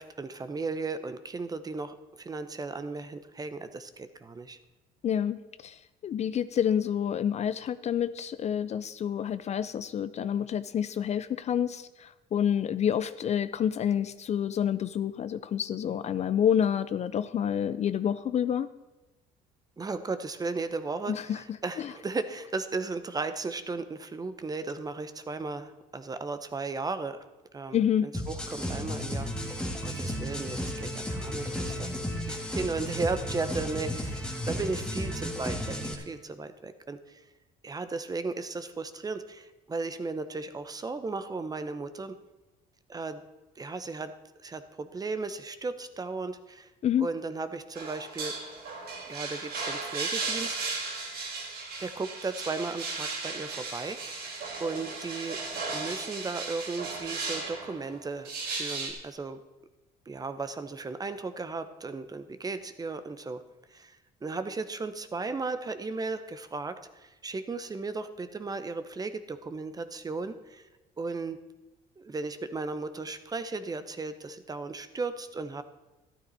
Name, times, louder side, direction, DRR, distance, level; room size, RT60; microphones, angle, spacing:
voice 1, 0.0-4.6 19.8-27.2 27.5-31.9 32.3-37.3 37.6-42.2 42.9-43.2 43.6-44.1 44.4-46.7 47.0-48.3 49.1-50.6 51.8-55.4 55.7-59.4 60.1-63.4 63.7-70.7 71.0-71.4 72.0-75.6, right 3 dB, 20° right, 11 dB, 0.8 m, -35 dB
voice 2, 5.0-18.7 21.1-21.4 21.8-21.9 27.7-28.1 46.8-47.1, left 9 dB, 40° left, 14 dB, 0.4 m, -28 dB
sound 1, 28.1-35.9, equal, 5° left, 1.8 m, -34 dB
sound 2, 47.7-58.9, right 4 dB, 70° right, 3.6 m, -36 dB
12.5 x 11.5 x 4.1 m, 1.1 s
cardioid pair, 110°, 17 cm